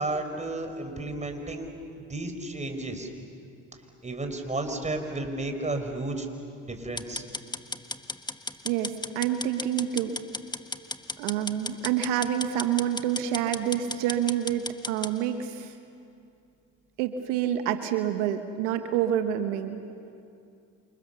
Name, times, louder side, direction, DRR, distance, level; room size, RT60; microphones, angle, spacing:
voice 1, 0.0-1.7 2.0-3.1 4.0-6.3 6.6-7.2, right 2 dB, 20° right, 5 dB, 4.9 m, -32 dB
sound 1, 7.0-15.1, left 2 dB, 10° left, 1.3 m, -35 dB
voice 2, 8.6-10.2 11.2-15.7 17.0-19.8, right 10 dB, 85° right, 8 dB, 1.2 m, -28 dB
28.0 x 27.5 x 7.1 m, 2.5 s
hypercardioid pair, 65°, 35 cm